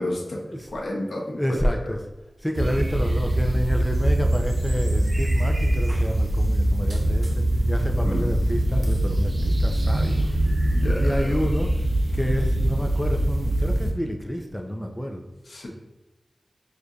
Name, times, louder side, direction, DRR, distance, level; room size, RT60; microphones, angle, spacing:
voice 1, 0.0-0.4 0.7-1.6 1.9-2.0 8.0-8.3 10.1-10.2 10.7-11.3 15.5-15.7, left 1 dB, 75° left, -2 dB, 0.9 m, -31 dB
voice 2, 1.4-2.0 2.4-10.7 11.0-11.8 12.1-15.2, equal, 5° left, 3 dB, 0.5 m, -29 dB
sound 1, 2.5-13.9, right 1 dB, 55° right, 0.8 m, -23 dB
6.4 x 2.6 x 2.4 m, 1.1 s
cardioid pair, 40°, 0 cm